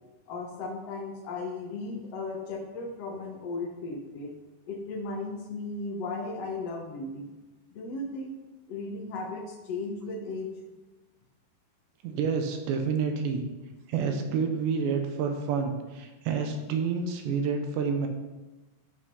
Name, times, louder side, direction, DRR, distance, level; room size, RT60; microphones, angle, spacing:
voice 1, 0.3-4.3 4.6-7.3 7.7-8.3 8.7-10.5, left 3 dB, 85° left, 0 dB, 1.3 m, -36 dB
voice 2, 12.0-13.4 13.9-18.1, right 5 dB, 75° right, 5 dB, 3.2 m, -29 dB
13.5 x 6.1 x 5.5 m, 1.1 s
omnidirectional pair, 5.3 m